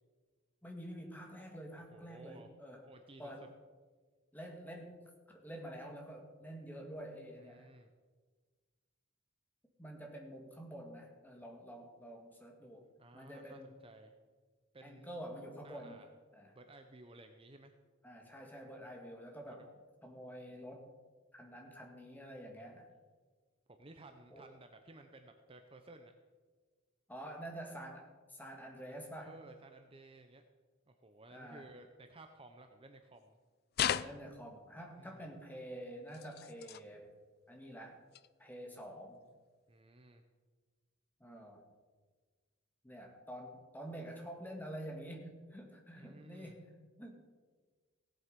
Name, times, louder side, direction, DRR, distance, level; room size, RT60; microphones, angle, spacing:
voice 1, 0.6-2.8 3.2-3.5 4.3-5.0 5.3-7.7 9.8-12.9 13.1-13.7 14.8-16.0 16.3-16.5 18.0-19.7 20.0-20.9 21.3-22.9 24.3-24.4 27.1-29.4 31.3-31.7 34.0-37.1 37.5-38.0 38.4-39.2 41.2-41.6 42.8-47.2, equal, 10° left, 2 dB, 1.8 m, -48 dB
voice 2, 1.9-2.5 2.8-3.3 7.4-7.9 13.0-14.1 14.7-15.1 15.6-16.1 16.5-17.7 19.5-19.6 23.7-26.1 29.2-30.4 30.9-33.4 34.9-35.3 39.7-40.2 46.0-46.6, right 2 dB, 25° right, 6 dB, 0.7 m, -56 dB
sound 1, 33.7-34.6 36.1-36.8 38.1-38.3 39.1-39.2, left 9 dB, 50° left, 0.4 m, -36 dB
17.0 x 7.7 x 5.3 m, 1.4 s
head